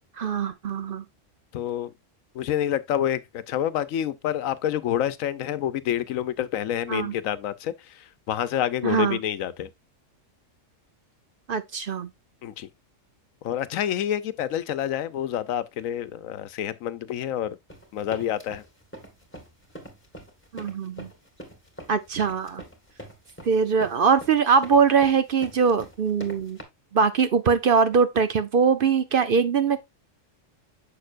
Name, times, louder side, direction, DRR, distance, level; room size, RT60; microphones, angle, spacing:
voice 1, 0.2-1.0 6.9-7.1 8.8-9.2 11.5-12.1 20.5-21.1 21.9-22.6 23.5-26.6 26.9-29.8, right 6 dB, 55° right, 0.7 m, -22 dB
voice 2, 1.5-1.9 2.3-9.7 12.4-12.7 13.4-17.6 17.9-18.6, left 10 dB, 90° left, 1.1 m, -28 dB
sound 1, 17.7-26.6, equal, 10° left, 1.8 m, -43 dB
7.2 x 6.6 x 2.4 m
omnidirectional pair, 1.4 m